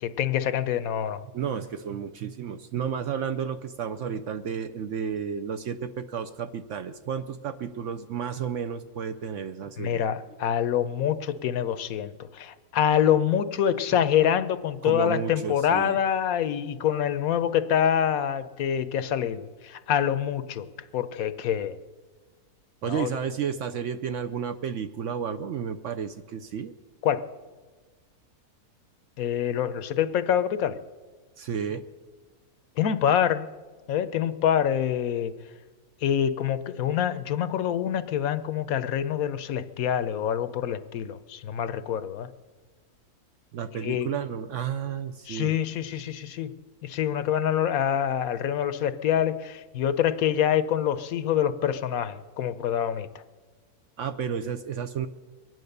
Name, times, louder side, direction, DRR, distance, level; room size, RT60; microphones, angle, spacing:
voice 1, 0.0-1.2 9.8-20.6 20.9-21.8 22.9-23.1 27.0-27.2 29.2-30.8 32.8-33.5 33.9-35.3 36.0-42.3 43.8-44.1 45.3-46.5 46.8-53.1, left 9 dB, 70° left, 12 dB, 1.0 m, -26 dB
voice 2, 1.3-10.0 14.8-16.0 22.8-26.7 31.4-31.8 43.5-45.6 54.0-55.1, right 7 dB, 65° right, 9 dB, 0.8 m, -32 dB
22.5 x 9.4 x 6.6 m, 1.4 s
omnidirectional pair, 1.6 m